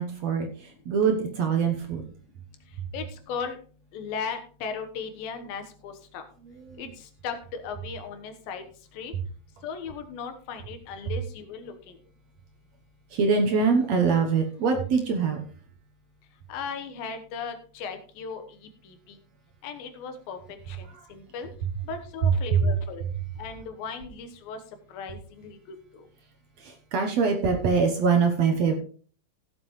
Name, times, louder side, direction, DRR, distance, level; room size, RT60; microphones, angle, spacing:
voice 1, 0.0-2.1 6.5-6.8 13.1-15.4 21.0-21.1 22.5-22.6 26.6-28.8, right 5 dB, 65° right, 4 dB, 1.8 m, -24 dB
voice 2, 2.9-3.6 3.9-6.3 6.8-8.6 8.9-9.1 9.6-12.0 16.5-18.4 18.8-19.2 19.6-21.5 21.8-23.1 23.4-24.6 24.9-25.6 25.9-26.0, left 6 dB, 85° left, 7 dB, 3.1 m, -37 dB
16.5 x 7.4 x 3.2 m, 0.41 s
omnidirectional pair, 4.0 m